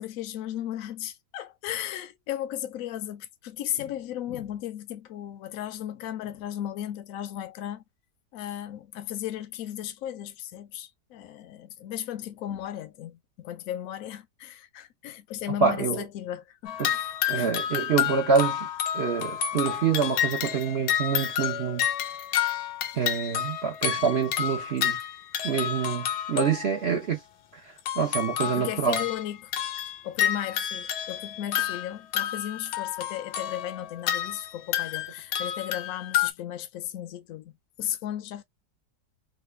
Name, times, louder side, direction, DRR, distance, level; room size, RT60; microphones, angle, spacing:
voice 1, 0.0-7.8 8.3-17.5 19.5-19.6 28.4-29.5 30.0-37.5 37.8-38.4, left 11 dB, 65° left, 0.9 m, -35 dB
voice 2, 15.6-16.0 16.8-16.9 17.3-18.7 18.9-21.8 22.9-25.0 25.4-27.2 27.6-29.0, right 6 dB, 55° right, 0.8 m, -26 dB
sound 1, 16.7-26.9 27.8-36.3, left 10 dB, 85° left, 1.2 m, -30 dB
3.2 x 2.3 x 3.1 m
omnidirectional pair, 1.8 m